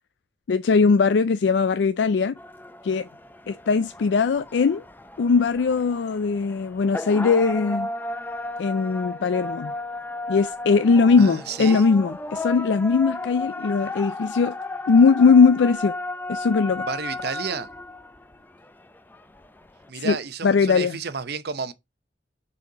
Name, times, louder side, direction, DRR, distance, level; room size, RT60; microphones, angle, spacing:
voice 1, 0.5-2.3 2.8-3.1 3.5-4.8 5.2-7.9 8.6-9.7 10.3-14.5 14.9-15.9 16.3-16.9 19.9-20.2 20.4-21.0, left 5 dB, 80° left, 0.4 m, -20 dB
sound 1, 2.4-19.9, left 2 dB, 10° left, 0.5 m, -34 dB
voice 2, 11.2-11.9 16.8-17.7 19.9-21.7, right 5 dB, 65° right, 0.7 m, -31 dB
6.6 x 4.2 x 4.9 m
head